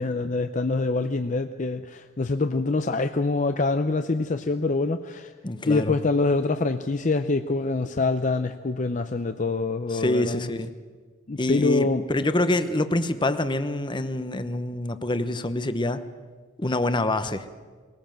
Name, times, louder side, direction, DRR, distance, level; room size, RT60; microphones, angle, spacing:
voice 1, 0.0-5.3 5.7-10.5 11.3-12.0, left 3 dB, 40° left, 8 dB, 0.6 m, -25 dB
voice 2, 5.4-6.0 9.9-10.7 11.4-16.0 16.6-17.5, left 2 dB, 25° left, 11 dB, 0.9 m, -26 dB
21.0 x 18.0 x 7.5 m, 1.5 s
head